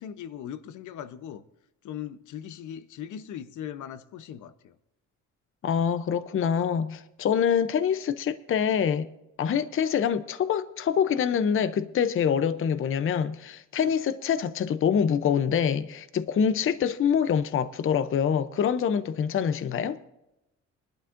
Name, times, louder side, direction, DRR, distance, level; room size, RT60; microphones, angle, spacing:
voice 1, 0.0-1.4 1.8-4.8, left 9 dB, 75° left, 0.8 m, -39 dB
voice 2, 5.6-9.1 9.4-20.0, left 7 dB, 45° left, 0.6 m, -25 dB
21.0 x 11.5 x 2.6 m
cardioid pair, 90°, 30 cm